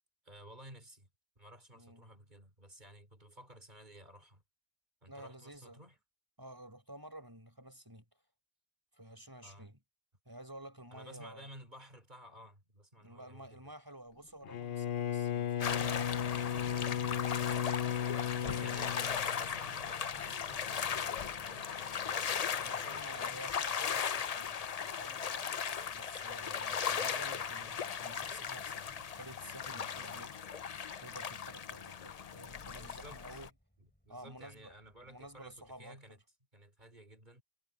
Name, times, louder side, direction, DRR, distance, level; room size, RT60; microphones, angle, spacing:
voice 1, 0.2-1.1 1.4-4.4 5.0-5.9 9.4-9.7 10.9-13.7 18.4-23.0 32.8-33.4 33.8-36.2 36.5-37.4, right 1 dB, 45° right, 3.9 m, -54 dB
voice 2, 1.7-2.0 5.1-5.8 6.4-8.1 8.9-9.8 10.3-11.5 13.0-16.4 16.8-17.8 18.3-18.9 22.6-25.4 25.9-30.4 31.0-33.5 34.1-34.7 35.0-36.0, right 1 dB, 20° right, 5.5 m, -51 dB
Bowed string instrument, 14.4-19.8, left 9 dB, 70° left, 0.9 m, -35 dB
sound 1, 15.6-33.5, left 7 dB, 45° left, 0.6 m, -37 dB
Fixed-wing aircraft airplane, 16.0-35.8, equal, 10° left, 5.8 m, -70 dB
omnidirectional pair, 1.1 m